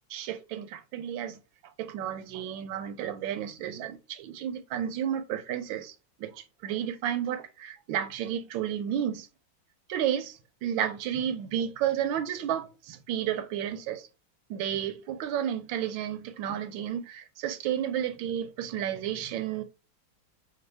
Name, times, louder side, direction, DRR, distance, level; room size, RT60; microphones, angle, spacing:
voice 1, 0.1-1.4 1.8-5.9 6.2-9.3 9.9-14.1 14.5-19.6, right 10 dB, 80° right, 1.3 m, -32 dB
5.2 x 2.3 x 3.2 m
omnidirectional pair, 2.1 m